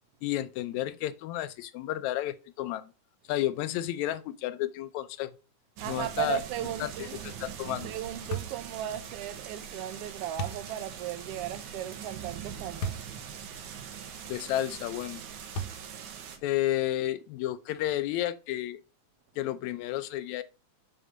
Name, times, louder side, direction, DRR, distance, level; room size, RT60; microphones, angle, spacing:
voice 1, 0.2-2.9 3.3-5.3 5.9-6.4 6.8-7.1 7.4-7.9 14.3-15.2 16.4-18.8 19.4-20.4, left 13 dB, 80° left, 1.8 m, -31 dB
voice 2, 5.8-7.2 7.8-13.1 13.5-13.6, right 12 dB, 70° right, 1.6 m, -36 dB
sound 1, 5.8-16.4, right 8 dB, 85° right, 2.6 m, -42 dB
sound 2, 8.3-8.6 10.4-10.7 12.8-13.1 13.7-13.8 15.5-16.0, right 1 dB, 60° left, 1.6 m, -34 dB
6.7 x 6.2 x 5.0 m
omnidirectional pair, 3.4 m